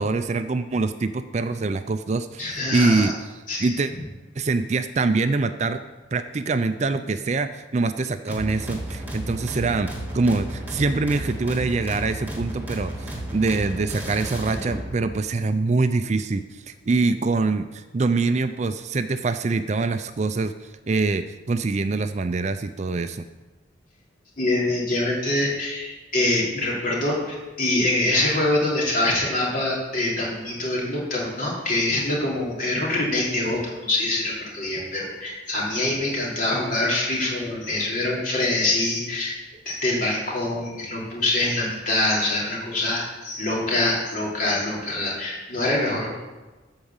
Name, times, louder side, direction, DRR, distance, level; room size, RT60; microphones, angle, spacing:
voice 1, 0.0-3.1 3.6-3.9 4.4-5.8 6.1-23.3, right 3 dB, 35° right, 10 dB, 0.4 m, -24 dB
voice 2, 2.4-3.1 3.5-3.7 24.4-39.3 39.6-46.1, left 2 dB, 45° left, -4 dB, 3.2 m, -24 dB
sound 1, 8.3-15.0, right 1 dB, 10° right, 1.6 m, -33 dB
13.0 x 4.8 x 7.3 m, 1.2 s
head